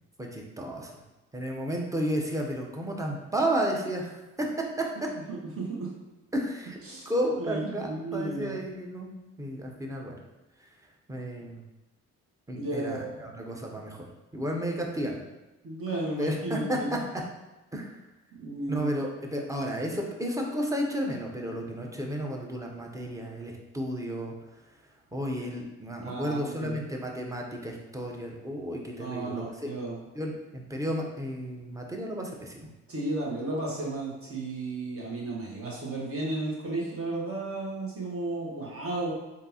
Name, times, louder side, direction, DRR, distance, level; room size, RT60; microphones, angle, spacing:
voice 1, 0.2-0.9 1.3-4.5 4.8-4.9 6.3-6.8 7.1-10.2 11.1-11.6 12.5-14.1 14.3-15.2 16.2-17.0 17.7-18.0 18.7-24.3 25.1-29.7 30.1-32.7, equal, 10° right, 0 dB, 0.7 m, -32 dB
voice 2, 5.3-5.9 6.8-7.1 7.4-8.6 12.6-13.2 15.6-17.0 18.4-18.9 26.0-26.8 28.9-30.0 32.9-39.1, right 2 dB, 40° right, -4 dB, 1.4 m, -33 dB
3.7 x 2.7 x 2.8 m, 1.1 s
supercardioid pair, 60°, 33 cm